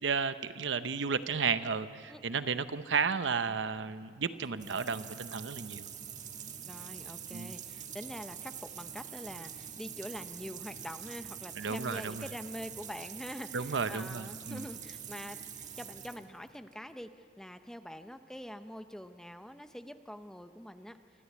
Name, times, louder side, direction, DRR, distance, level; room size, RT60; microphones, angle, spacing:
voice 1, 0.0-5.9 7.3-7.5 11.6-12.3 13.5-14.7, right 5 dB, 75° right, 12 dB, 0.7 m, -33 dB
sound 1, 4.3-16.7, right 8 dB, 45° right, 1.3 m, -45 dB
voice 2, 6.6-17.1 17.4-21.0, equal, 5° left, 9 dB, 0.6 m, -45 dB
25.0 x 13.0 x 8.3 m, 2.2 s
head